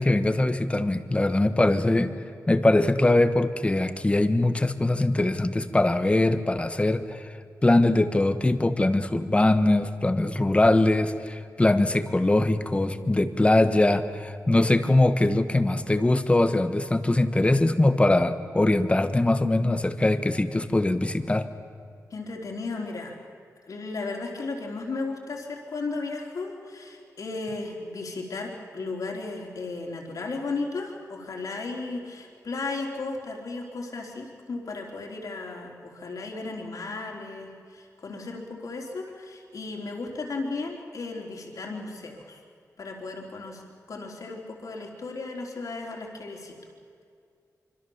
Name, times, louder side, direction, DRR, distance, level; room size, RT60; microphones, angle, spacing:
voice 1, 0.0-2.1 2.5-7.3 7.6-21.5, left 2 dB, 20° left, 10 dB, 1.3 m, -22 dB
voice 2, 22.1-23.1 23.7-42.4 42.8-43.6 43.9-46.6, left 3 dB, 65° left, 1 dB, 3.9 m, -35 dB
25.5 x 25.5 x 7.2 m, 2.3 s
wide cardioid pair, 115°, 6 cm